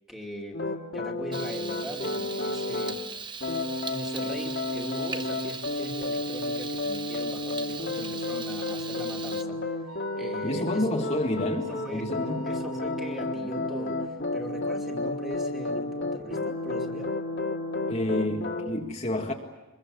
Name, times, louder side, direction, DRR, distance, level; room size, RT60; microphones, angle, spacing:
voice 1, 0.1-0.7 0.9-3.0 3.9-9.8 10.1-11.1 11.6-12.1 12.4-17.1, equal, ahead, 2.6 m, -40 dB
sound 1, 0.5-3.0 3.4-18.7, left 2 dB, 50° left, 2.1 m, -31 dB
Frying (food), 1.3-9.4, right 5 dB, 20° right, 0.8 m, -39 dB
Wind instrument woodwind instrument, 8.9-13.2, right 2 dB, 80° right, 2.9 m, -48 dB
voice 2, 10.4-12.5 17.9-19.3, left 1 dB, 30° left, 1.7 m, -29 dB
25.5 x 22.0 x 8.4 m
head